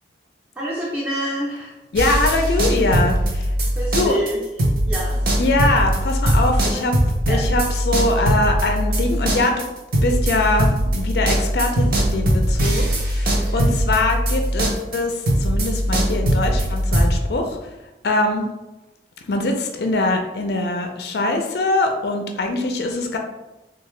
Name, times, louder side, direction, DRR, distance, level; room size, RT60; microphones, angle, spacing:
voice 1, 0.6-1.8 3.8-4.4 4.8-5.2 6.7-7.4 13.2-13.7, right 1 dB, 10° right, -7 dB, 0.5 m, -28 dB
voice 2, 1.9-3.5 3.9-4.2 5.4-6.9 7.3-9.6 10.0-17.6 18.0-18.4 19.3-23.2, left 2 dB, 70° left, 4 dB, 0.4 m, -22 dB
sound 1, 1.9-4.3 4.6-17.1, right 1 dB, 55° right, 0.7 m, -20 dB
3.6 x 2.3 x 3.1 m, 1.0 s
head